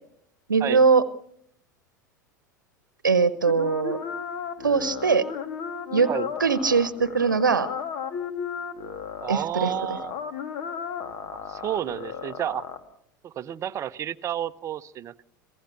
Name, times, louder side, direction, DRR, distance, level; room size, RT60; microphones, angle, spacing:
voice 1, 0.5-1.0 3.0-4.0 4.6-5.3 5.9-6.1 6.4-7.7 9.3-9.7, right 5 dB, 75° right, 17 dB, 1.0 m, -21 dB
sound 1, 3.5-12.8, left 7 dB, 50° left, 2.5 m, -34 dB
voice 2, 9.2-10.1 11.3-12.7 13.2-15.3, right 10 dB, 30° right, 13 dB, 0.7 m, -31 dB
26.5 x 16.5 x 6.8 m, 0.68 s
figure-of-eight pair, 80°, 10 cm